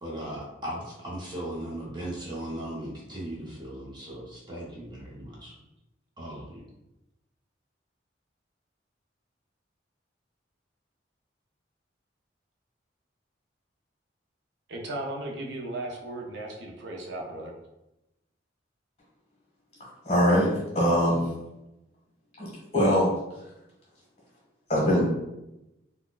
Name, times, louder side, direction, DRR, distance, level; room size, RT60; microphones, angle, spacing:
voice 1, 0.0-5.5 6.2-6.6, right 1 dB, 25° right, -5 dB, 0.7 m, -37 dB
voice 2, 14.7-17.5, right 1 dB, 70° right, 0 dB, 0.5 m, -36 dB
voice 3, 20.0-21.3 22.4-23.1 24.7-25.1, equal, 35° left, -4 dB, 1.2 m, -23 dB
4.1 x 2.1 x 2.3 m, 0.93 s
head